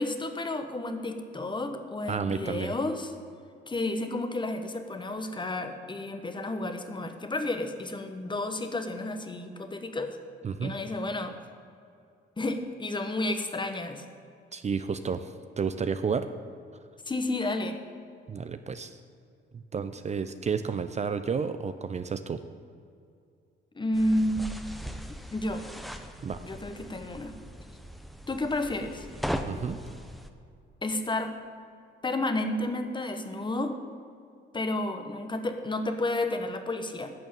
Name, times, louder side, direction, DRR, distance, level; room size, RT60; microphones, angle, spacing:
voice 1, 0.0-3.1 3.7-10.2 10.6-11.3 12.4-14.0 17.1-17.8 23.7-24.5 25.3-25.6 26.4-27.4 28.3-29.1 30.8-31.3 32.0-33.8 34.5-37.1, left 2 dB, 25° left, 7 dB, 1.2 m, -31 dB
voice 2, 2.1-2.7 10.4-10.8 14.5-16.3 18.3-19.0 19.5-22.4 26.2-26.4 29.4-29.8, right 6 dB, 35° right, 10 dB, 0.6 m, -31 dB
sound 1, 23.9-30.3, equal, ahead, 0.9 m, -39 dB
11.0 x 6.5 x 9.0 m, 2.4 s
cardioid pair, 90°, 20 cm